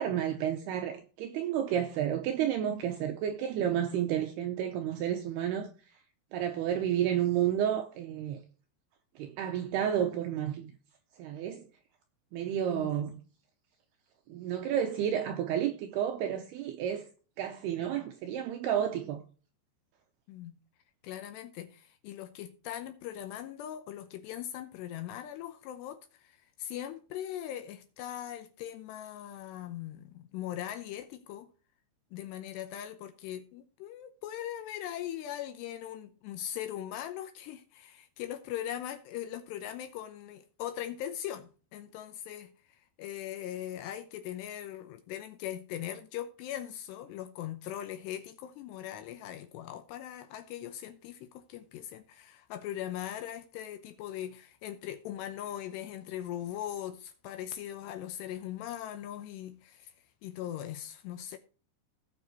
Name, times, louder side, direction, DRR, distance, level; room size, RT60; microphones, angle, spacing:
voice 1, 0.0-5.7 6.3-8.4 9.2-10.7 11.2-11.6 12.3-13.2 14.3-17.0 17.4-19.2, right 10 dB, 90° right, 2.3 m, -31 dB
voice 2, 12.6-12.9 20.3-20.6 21.0-31.5 32.1-59.9 60.2-61.4, left 11 dB, 80° left, 2.6 m, -40 dB
17.5 x 5.8 x 3.0 m
omnidirectional pair, 5.4 m